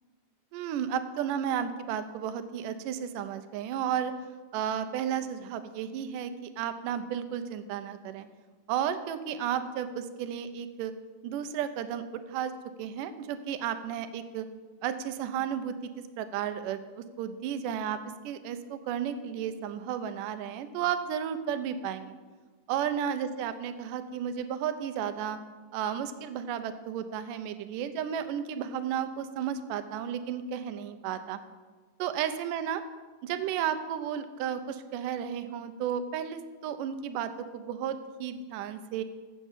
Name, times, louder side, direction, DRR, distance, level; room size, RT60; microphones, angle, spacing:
voice 1, 0.5-4.1 4.5-8.3 8.7-10.9 11.2-12.0 12.3-12.5 12.8-14.5 14.8-15.7 16.2-18.0 18.2-22.2 22.7-25.4 25.7-31.4 32.0-32.8 33.2-39.0, right 9 dB, 90° right, 10 dB, 2.2 m, -33 dB
7.2 x 7.0 x 7.2 m, 1.4 s
omnidirectional pair, 3.7 m